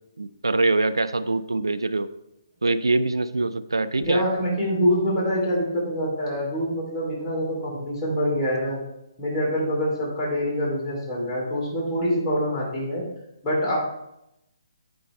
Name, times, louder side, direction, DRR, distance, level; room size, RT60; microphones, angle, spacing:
voice 1, 0.2-2.1 2.6-4.2, right 2 dB, 85° right, 13 dB, 0.4 m, -23 dB
voice 2, 4.0-8.8 9.2-13.0 13.4-13.8, equal, 15° left, -7 dB, 2.9 m, -25 dB
8.7 x 5.3 x 3.2 m, 0.86 s
figure-of-eight pair, 140°, 2 cm